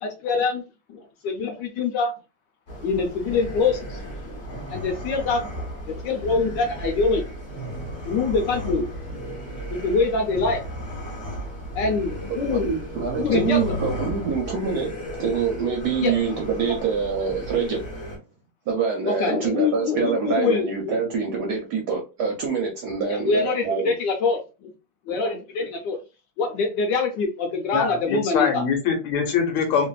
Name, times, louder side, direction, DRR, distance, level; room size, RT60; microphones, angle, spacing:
voice 1, 0.0-0.6 0.9-2.1 2.8-4.4 4.7-7.2 8.0-8.9 9.7-10.6 11.7-12.7 13.2-13.8 16.0-16.1 19.0-21.0 23.1-24.7 25.1-26.0 26.4-28.6, left 4 dB, 70° left, 2 dB, 1.2 m, -24 dB
sound 1, 2.7-18.2, equal, 45° left, 0.9 m, -34 dB
voice 2, 12.5-14.9 15.2-17.8 18.7-23.9, right 5 dB, 70° right, 0 dB, 0.9 m, -25 dB
voice 3, 27.7-29.9, left 6 dB, 90° left, 5 dB, 1.6 m, -23 dB
3.2 x 2.6 x 2.3 m, 0.29 s
omnidirectional pair, 2.3 m